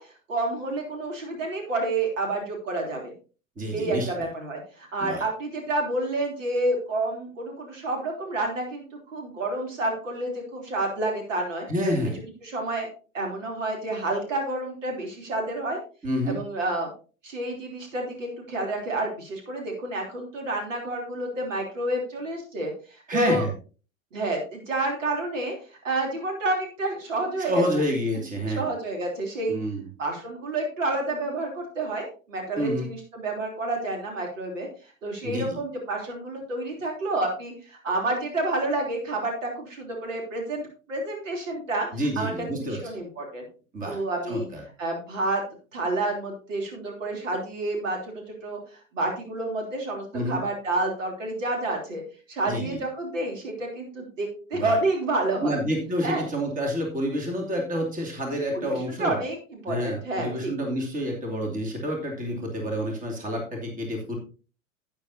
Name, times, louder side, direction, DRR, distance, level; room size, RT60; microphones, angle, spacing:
voice 1, 0.0-3.1 3.7-11.7 12.4-12.9 13.1-15.8 16.3-16.9 17.2-23.5 24.1-25.5 25.8-27.8 28.5-29.6 30.0-41.9 42.2-43.4 43.9-44.5 44.8-45.4 45.7-52.0 52.3-55.6 56.0-56.3 58.5-60.5, right 2 dB, 65° right, 1 dB, 3.4 m, -29 dB
voice 2, 3.6-4.1 5.0-5.2 11.7-12.2 16.0-16.4 23.1-23.5 27.4-28.7 29.5-29.8 32.6-32.9 35.2-35.6 41.9-42.8 43.7-44.0 44.3-44.6 50.1-50.4 52.5-52.8 54.5-54.7 55.4-59.2 59.7-64.2, equal, 20° right, 2 dB, 2.7 m, -28 dB
11.5 x 9.4 x 2.8 m, 0.36 s
figure-of-eight pair, 90°, 41 cm